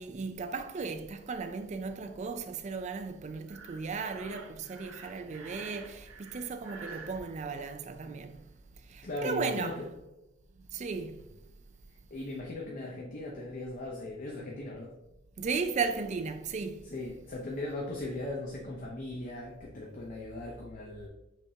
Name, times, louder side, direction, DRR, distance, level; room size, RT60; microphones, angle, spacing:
voice 1, 0.0-8.4 8.8-9.8 10.7-11.2 15.4-16.9, right 4 dB, 35° right, 0.3 m, -35 dB
Breathing, 3.5-7.2, right 4 dB, 90° right, 0.8 m, -48 dB
voice 2, 9.0-9.9 12.1-14.9 16.9-21.1, left 2 dB, 40° left, 0.6 m, -38 dB
5.3 x 3.6 x 2.7 m
head